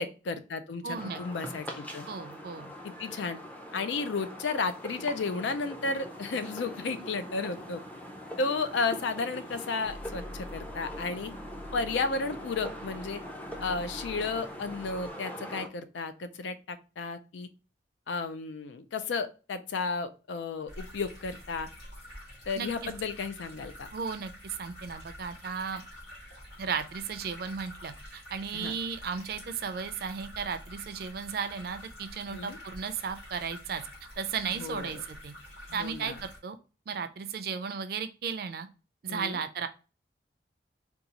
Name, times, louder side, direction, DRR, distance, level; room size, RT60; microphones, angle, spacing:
voice 1, 0.0-2.1 2.8-3.4 3.7-7.8 8.4-11.3 11.7-13.2 13.6-17.5 18.1-21.7 22.5-23.9 28.5-28.7 32.3-32.6 34.5-35.0 35.7-36.2 39.1-39.4, left 4 dB, 85° left, 11 dB, 0.4 m, -33 dB
voice 2, 0.8-1.2 2.1-2.7 22.6-22.9 23.9-25.8 26.6-33.8 34.2-35.3 35.7-36.6 36.9-38.7 39.0-39.7, right 6 dB, 55° right, 9 dB, 0.4 m, -35 dB
sound 1, 0.9-15.7, equal, 10° left, 0.5 m, -42 dB
sound 2, 9.8-15.1, equal, 25° left, 1.2 m, -47 dB
sound 3, 20.7-36.4, left 1 dB, 60° left, 1.8 m, -48 dB
3.8 x 2.3 x 2.8 m, 0.34 s
head